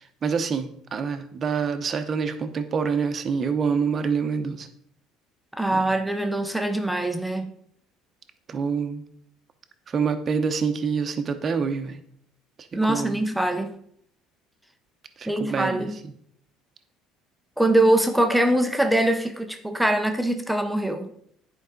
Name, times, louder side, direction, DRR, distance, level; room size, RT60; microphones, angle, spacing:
voice 1, 0.2-4.7 5.7-5.8 8.5-9.0 9.9-12.0 12.9-13.2 15.2-15.9, right 5 dB, 35° right, 0.8 m, -26 dB
voice 2, 5.6-7.5 12.7-13.8 15.3-16.0 17.6-21.1, right 1 dB, 5° right, 0.6 m, -23 dB
9.9 x 4.7 x 3.9 m
cardioid pair, 130°, 0 cm